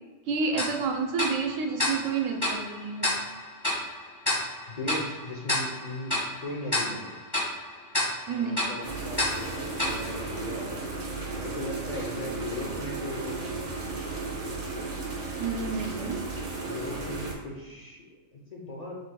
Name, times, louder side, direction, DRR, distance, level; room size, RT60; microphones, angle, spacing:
voice 1, 0.3-3.1 8.3-8.7 15.4-16.2, right 5 dB, 90° right, 3 dB, 1.0 m, -29 dB
Tick-tock, 0.6-11.0, left 1 dB, 20° left, 1.2 m, -32 dB
voice 2, 4.7-7.1 8.3-10.8 11.3-13.5 16.7-18.9, left 1 dB, 45° left, -3 dB, 0.6 m, -38 dB
sound 1, 8.8-17.3, right 3 dB, 50° right, 1.0 m, -34 dB
5.8 x 3.3 x 2.2 m, 1.2 s
omnidirectional pair, 1.3 m